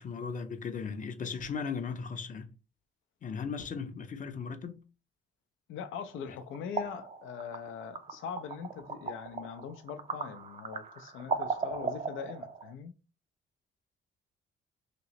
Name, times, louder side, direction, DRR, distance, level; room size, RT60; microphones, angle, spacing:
voice 1, 0.0-2.5 3.2-4.8, left 5 dB, 40° left, 0.6 m, -37 dB
voice 2, 5.7-12.9, left 7 dB, 80° left, 0.5 m, -41 dB
sound 1, 6.1-12.7, right 5 dB, 35° right, 0.5 m, -38 dB
3.0 x 2.9 x 2.8 m
cardioid pair, 90°, 20 cm